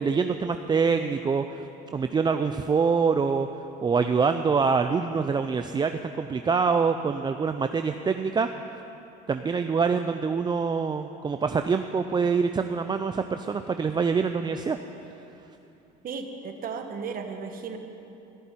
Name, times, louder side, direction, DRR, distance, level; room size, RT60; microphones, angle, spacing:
voice 1, 0.0-1.7 1.9-3.5 3.8-8.8 9.3-14.8, right 5 dB, 20° right, 7 dB, 0.5 m, -25 dB
voice 2, 16.0-17.8, right 5 dB, 45° right, 5 dB, 1.4 m, -35 dB
13.5 x 7.1 x 9.6 m, 2.8 s
supercardioid pair, 95°, 19 cm